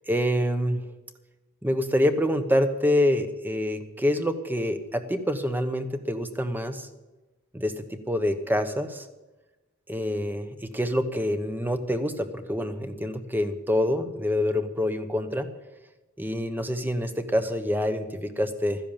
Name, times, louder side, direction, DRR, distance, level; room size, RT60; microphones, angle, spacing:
voice 1, 0.1-0.8 1.6-6.9 7.5-9.1 9.9-15.5 16.2-18.8, left 1 dB, 10° right, 9 dB, 1.0 m, -26 dB
13.0 x 10.5 x 7.3 m, 1.1 s
head